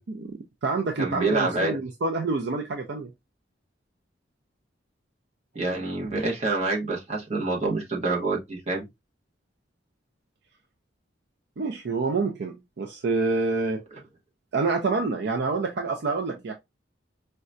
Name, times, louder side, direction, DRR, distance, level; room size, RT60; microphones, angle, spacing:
voice 1, 0.1-3.1 11.6-13.8 14.5-16.5, right 3 dB, 65° right, 0.5 m, -27 dB
voice 2, 1.0-1.8 5.5-8.9, right 3 dB, 40° right, 1.1 m, -27 dB
4.7 x 2.2 x 2.5 m
head